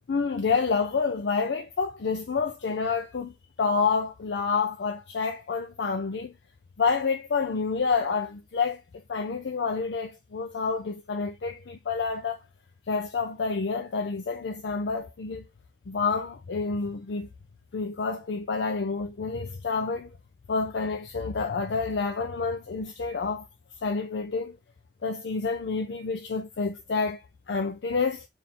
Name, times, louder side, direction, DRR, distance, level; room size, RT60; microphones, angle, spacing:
voice 1, 0.1-3.3 3.6-6.3 6.8-8.8 9.1-12.4 12.9-15.4 15.9-17.3 17.7-20.2 20.5-23.5 23.8-24.6 25.0-27.2 27.5-28.3, left 4 dB, 85° left, 0.5 m, -28 dB
3.5 x 2.6 x 4.2 m
head